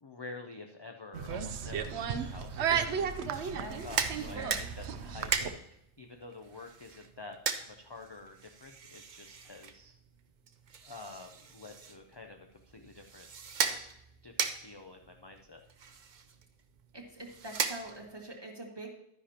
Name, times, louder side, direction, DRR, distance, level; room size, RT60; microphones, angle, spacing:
voice 1, 0.0-3.3 3.8-4.4 4.8-10.0 10.8-13.3 13.6-13.9 14.2-15.6, left 3 dB, 35° left, 4 dB, 0.4 m, -49 dB
sound 1, 1.1-5.5, right 7 dB, 75° right, 0.9 m, -34 dB
voice 2, 3.3-4.6 16.9-18.9, right 1 dB, 20° right, -1 dB, 1.9 m, -45 dB
sound 2, 3.6-18.3, right 6 dB, 45° right, 0.8 m, -39 dB
12.0 x 9.9 x 2.9 m, 0.78 s
omnidirectional pair, 1.2 m